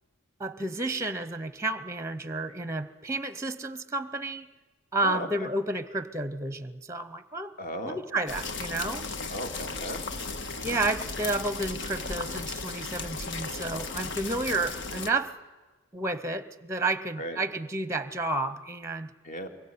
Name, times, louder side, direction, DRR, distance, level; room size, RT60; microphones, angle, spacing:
voice 1, 0.4-4.5 4.9-7.5 7.8-9.0 10.6-15.3 15.9-19.1, right 2 dB, 15° right, 13 dB, 0.9 m, -31 dB
voice 2, 5.0-5.5 7.6-8.0 9.3-10.2 17.2-17.4 19.2-19.5, equal, 40° left, 5 dB, 2.8 m, -36 dB
sound 1, 8.3-15.1, left 4 dB, 65° left, 1.6 m, -35 dB
23.5 x 22.0 x 9.5 m, 1.3 s
head